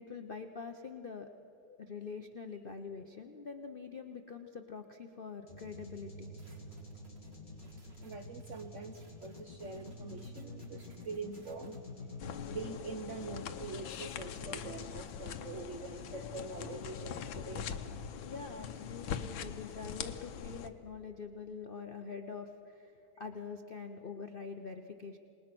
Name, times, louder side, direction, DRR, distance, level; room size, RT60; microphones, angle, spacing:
voice 1, 0.0-1.3 1.6-6.3 18.2-25.2, left 5 dB, 50° left, 6 dB, 0.6 m, -45 dB
sound 1, 5.5-17.4, left 2 dB, 25° left, 4.2 m, -49 dB
sound 2, 6.4-11.8, right 1 dB, 30° right, 2.3 m, -65 dB
voice 2, 8.0-11.8 12.5-17.7, right 3 dB, 55° right, 7 dB, 0.9 m, -44 dB
sound 3, 12.2-20.7, left 7 dB, 85° left, 1.7 m, -42 dB
27.0 x 20.0 x 6.1 m, 2.9 s
omnidirectional pair, 2.1 m